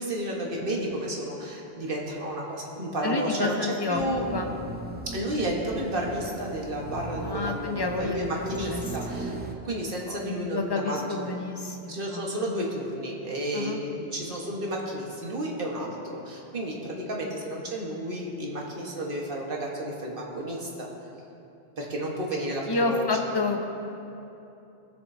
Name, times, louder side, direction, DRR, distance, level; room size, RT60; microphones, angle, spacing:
voice 1, 0.0-4.3 5.0-9.4 9.6-11.3 11.9-20.9 21.8-23.1, right 1 dB, 55° right, -2 dB, 1.5 m, -32 dB
voice 2, 3.0-4.5 7.2-8.8 10.1-12.5 13.5-13.8 22.7-23.6, left 3 dB, 25° left, 3 dB, 0.7 m, -30 dB
sound 1, 3.9-9.5, right 2 dB, 15° right, 0.4 m, -38 dB
19.0 x 7.0 x 2.7 m, 2.8 s
omnidirectional pair, 1.1 m